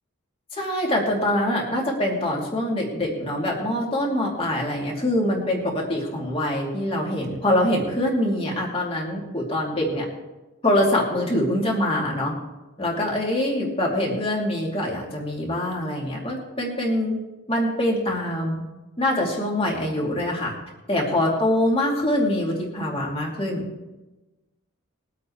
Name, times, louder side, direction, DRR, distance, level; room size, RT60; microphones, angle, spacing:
voice 1, 0.5-10.0 10.6-12.3 12.8-17.2 17.5-18.6 19.0-20.5 20.9-23.6, left 1 dB, 25° left, -2 dB, 2.8 m, -24 dB
22.0 x 8.5 x 3.3 m, 1.1 s
head